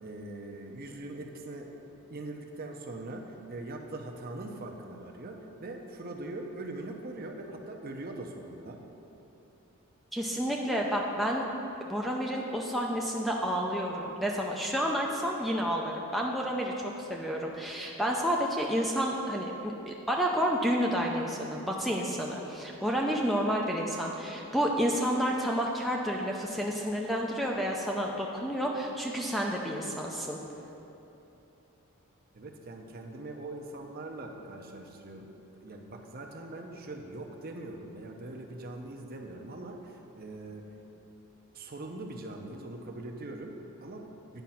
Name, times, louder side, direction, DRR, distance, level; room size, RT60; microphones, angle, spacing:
voice 1, 0.0-1.8 2.1-8.8 32.3-35.3 35.5-40.8 41.5-44.4, right 2 dB, 45° right, 2 dB, 0.7 m, -42 dB
voice 2, 10.1-11.5 11.9-30.4, equal, ahead, -1 dB, 0.5 m, -30 dB
9.3 x 5.0 x 5.8 m, 3.0 s
head